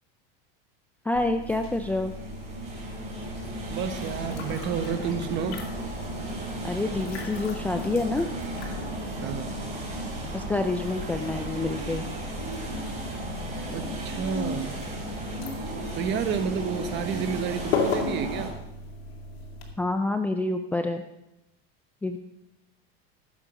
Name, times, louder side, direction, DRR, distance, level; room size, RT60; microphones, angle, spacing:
voice 1, 1.0-2.1 6.6-8.3 10.3-12.0 19.8-21.0 22.0-22.2, left 2 dB, 5° left, 6 dB, 0.4 m, -27 dB
sound 1, 1.1-19.7, left 3 dB, 90° left, 2.6 m, -38 dB
sound 2, 1.2-18.5, right 1 dB, 25° right, 4.4 m, -35 dB
voice 2, 3.7-5.6 9.2-9.6 13.7-14.8 15.9-18.6, right 7 dB, 40° right, 9 dB, 1.2 m, -30 dB
14.0 x 7.4 x 5.3 m, 0.90 s
supercardioid pair, 135°, 30 cm